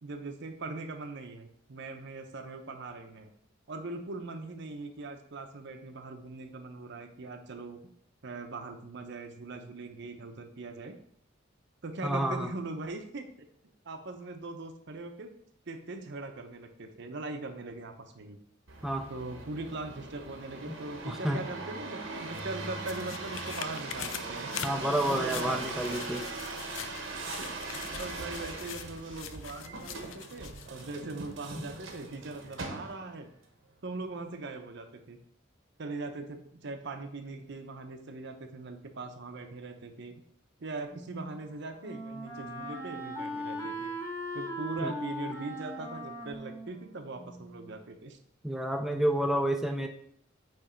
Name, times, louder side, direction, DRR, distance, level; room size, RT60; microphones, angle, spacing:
voice 1, 0.0-3.3 3.7-7.8 8.2-11.0 11.8-13.2 13.8-15.3 15.7-18.4 19.1-24.7 25.1-25.7 27.6-33.3 33.8-35.2 35.8-40.1 40.6-43.9 44.3-48.2, right 3 dB, 60° right, 6 dB, 0.8 m, -41 dB
voice 2, 12.0-12.5 18.8-19.1 21.1-21.4 24.6-26.3 44.8-44.9 48.4-49.9, right 1 dB, ahead, 4 dB, 0.4 m, -29 dB
sound 1, 18.7-33.2 33.8-34.3, right 3 dB, 80° right, 1.2 m, -40 dB
sound 2, 22.1-30.9 31.3-31.4, left 9 dB, 75° left, 0.5 m, -44 dB
Wind instrument woodwind instrument, 40.9-47.8, equal, 15° left, 1.2 m, -40 dB
8.7 x 3.2 x 4.4 m, 0.67 s
head